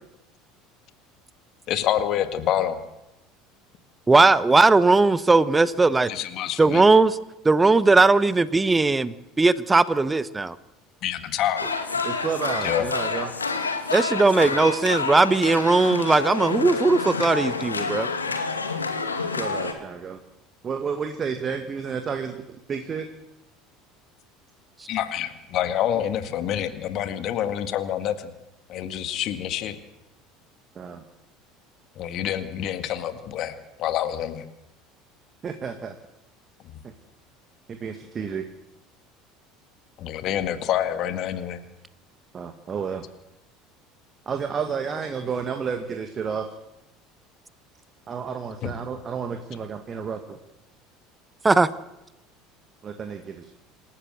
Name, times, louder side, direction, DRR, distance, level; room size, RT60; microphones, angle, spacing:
voice 1, 1.7-2.8 6.1-6.8 11.0-11.7 12.6-12.9 24.9-28.3 28.7-29.8 32.0-34.4 40.0-41.6 48.6-48.7, left 11 dB, 45° left, 9 dB, 1.9 m, -27 dB
voice 2, 4.1-6.1 6.6-7.2 7.4-10.6 13.9-18.1 51.4-51.7, right 3 dB, 15° right, 17 dB, 0.9 m, -18 dB
sound 1, 11.6-19.7, left 4 dB, 80° left, 2.2 m, -28 dB
voice 3, 12.0-13.3 19.4-20.2 20.6-22.4 22.7-23.1 30.8-31.0 35.4-36.0 36.8-36.9 37.7-38.4 42.3-43.0 44.3-46.5 48.1-50.4 52.8-53.5, right 6 dB, 30° right, 6 dB, 1.8 m, -31 dB
27.0 x 13.5 x 7.9 m, 0.93 s
figure-of-eight pair, 65°, 0 cm